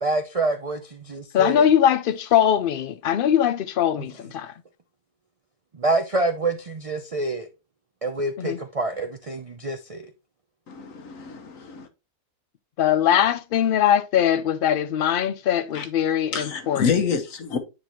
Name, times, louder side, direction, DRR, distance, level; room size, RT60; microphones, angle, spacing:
voice 1, 0.0-1.6 5.8-7.5 8.0-10.0, right 2 dB, 50° right, 0.4 m, -26 dB
voice 2, 1.3-4.5 8.4-8.6 12.8-16.9, left 9 dB, 85° left, 0.4 m, -21 dB
voice 3, 10.7-11.9 15.7-15.9 16.3-17.6, left 6 dB, 65° left, 1.4 m, -27 dB
9.6 x 3.9 x 3.0 m
omnidirectional pair, 1.5 m